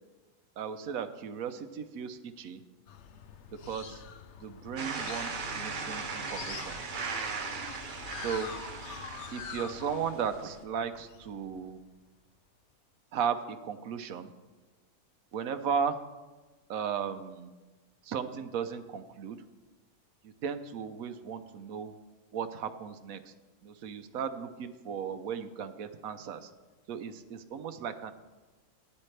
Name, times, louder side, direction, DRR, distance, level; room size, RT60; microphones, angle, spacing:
voice 1, 0.6-2.6 3.7-4.0 4.4-6.8 8.2-8.5 9.3-11.8 13.1-14.3 15.3-16.0 16.7-17.5 18.0-19.4 20.2-21.9 22.3-23.3 23.6-26.5 26.9-28.1, right 7 dB, 75° right, 10 dB, 1.1 m, -35 dB
sound 1, 2.9-11.9, left 8 dB, 60° left, 0.8 m, -46 dB
sound 2, 4.8-10.6, right 4 dB, 40° right, 0.8 m, -38 dB
14.5 x 9.8 x 3.3 m, 1.2 s
omnidirectional pair, 1.5 m